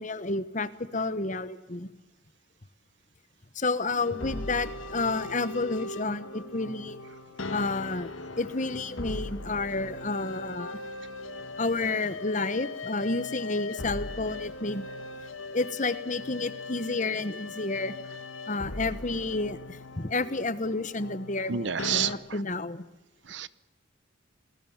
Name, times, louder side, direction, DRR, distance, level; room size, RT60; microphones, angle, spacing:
voice 1, 0.0-1.9 3.5-7.0 7.5-8.1 8.4-10.8 11.6-14.9 15.5-17.9 18.5-22.8, left 3 dB, 40° left, 14 dB, 1.2 m, -30 dB
sound 1, 4.0-22.1, left 2 dB, 85° left, 1.8 m, -39 dB
voice 2, 21.5-22.1 23.3-23.5, right 8 dB, 60° right, 17 dB, 0.9 m, -28 dB
28.0 x 20.0 x 7.3 m, 1.0 s
head